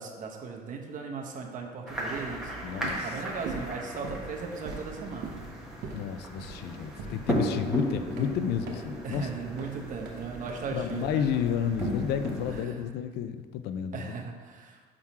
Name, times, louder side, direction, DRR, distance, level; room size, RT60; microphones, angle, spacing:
voice 1, 0.0-2.5 3.0-5.4 9.0-11.2 12.5-12.8 13.9-14.8, right 5 dB, 50° right, 1 dB, 0.9 m, -37 dB
sound 1, 1.9-12.6, equal, 5° right, 1.2 m, -36 dB
voice 2, 2.6-3.1 5.9-9.3 10.7-14.1, left 8 dB, 75° left, 10 dB, 0.4 m, -31 dB
sound 2, 2.7-12.8, right 4 dB, 85° right, 0.9 m, -43 dB
6.0 x 3.7 x 4.3 m, 1.5 s
cardioid pair, 110°, 17 cm